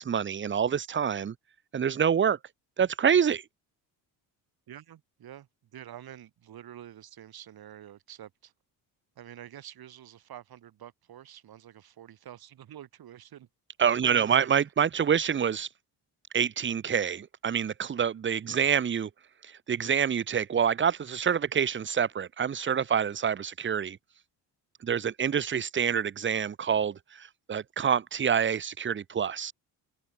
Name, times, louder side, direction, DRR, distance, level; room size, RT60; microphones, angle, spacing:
voice 1, 0.0-1.3 1.7-2.4 2.8-3.4 13.8-15.7 16.3-19.1 19.4-24.0 24.8-29.5, right 7 dB, 30° right, 0.8 m, -27 dB
voice 2, 4.7-8.5 9.2-13.5 14.0-14.5 18.4-18.7, right 11 dB, 60° right, 4.0 m, -47 dB
open air
cardioid pair, 100°, 41 cm